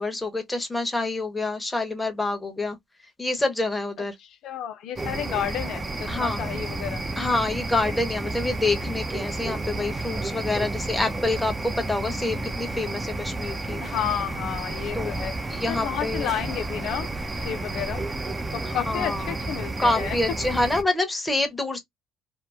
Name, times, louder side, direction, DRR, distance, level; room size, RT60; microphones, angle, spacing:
voice 1, 0.0-2.8 3.2-4.1 6.1-6.4 7.2-13.8 14.9-15.2 15.5-16.3 18.6-19.4 19.8-21.8, left 2 dB, 15° left, 1.2 m, -27 dB
voice 2, 4.0-7.0 13.8-15.3 15.7-17.1 17.4-18.0 18.5-20.2, left 9 dB, 70° left, 0.5 m, -31 dB
sound 1, 5.0-20.8, right 2 dB, 20° right, 0.8 m, -31 dB
2.9 x 2.2 x 3.4 m
supercardioid pair, 75°, 0 cm